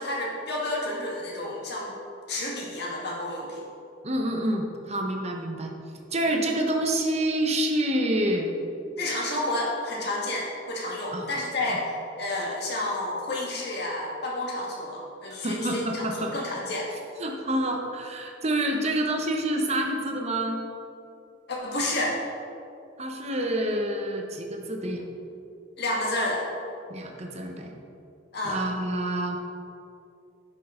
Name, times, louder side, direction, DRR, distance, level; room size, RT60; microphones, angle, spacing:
voice 1, 0.0-1.9 2.3-3.6 9.0-11.8 12.2-16.9 21.5-22.2 25.8-26.4 28.3-28.6, left 1 dB, 60° left, -3 dB, 1.9 m, -30 dB
voice 2, 4.0-5.7 6.1-8.5 11.1-11.3 11.7-11.8 15.4-16.3 17.2-20.6 23.0-25.0 26.9-27.7 28.4-29.4, right 1 dB, 35° right, 2 dB, 0.9 m, -27 dB
10.0 x 6.3 x 3.8 m, 2.6 s
head